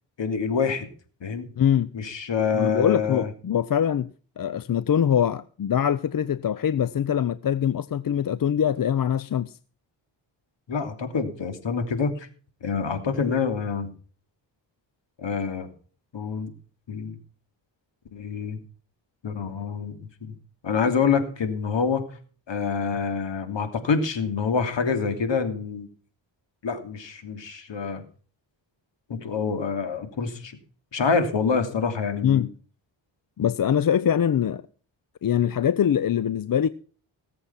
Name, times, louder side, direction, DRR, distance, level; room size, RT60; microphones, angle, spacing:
voice 1, 0.2-0.9 1.2-1.5 1.9-3.3 10.7-12.3 12.6-13.9 15.2-15.7 16.1-16.5 16.9-17.2 18.1-18.6 19.2-20.3 20.6-22.0 22.5-25.9 26.6-28.0 29.1-30.6 30.9-32.5, left 5 dB, 65° left, 3.0 m, -26 dB
voice 2, 1.6-1.9 2.5-4.1 4.4-9.6 32.2-32.5 33.4-34.6 35.2-36.7, left 9 dB, 45° left, 0.7 m, -23 dB
18.0 x 7.7 x 5.7 m
cardioid pair, 65°, 46 cm